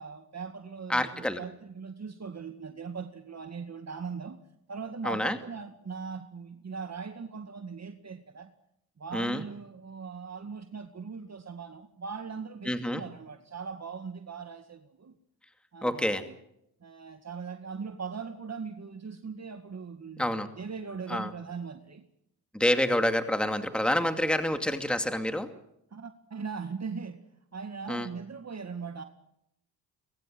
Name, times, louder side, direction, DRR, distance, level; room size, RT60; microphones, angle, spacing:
voice 1, 0.0-4.4 4.7-8.5 9.0-15.1 15.7-16.3 16.8-22.0 25.9-27.2 27.5-29.0, right 5 dB, 40° right, 2.0 m, -40 dB
voice 2, 0.9-1.4 5.0-5.4 9.1-9.4 12.7-13.0 15.8-16.2 20.2-20.5 21.1-21.3 22.5-25.5 27.9-28.1, left 1 dB, ahead, 2.5 m, -27 dB
22.5 x 21.5 x 7.8 m
supercardioid pair, 55°, 42 cm